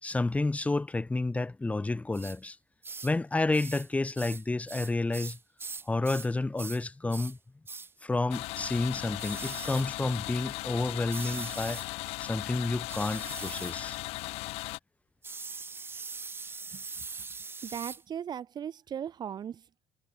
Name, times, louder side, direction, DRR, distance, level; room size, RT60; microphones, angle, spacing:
voice 1, 0.0-2.6 3.0-5.4 5.9-7.4 8.0-11.8 12.2-14.0, left 2 dB, 15° left, 3.9 m, -30 dB
sound 1, 2.1-2.4 2.8-3.2 3.5-3.9 4.2-6.3 6.6-6.8 7.1-7.4 7.7-7.9 9.2-9.9 11.1-11.9 12.9-13.8 15.2-18.0, right 4 dB, 20° right, 2.3 m, -41 dB
sound 2, 8.3-14.8, left 22 dB, 80° left, 2.5 m, -37 dB
voice 2, 17.6-19.9, right 9 dB, 45° right, 2.0 m, -38 dB
cardioid pair, 110°, 10 cm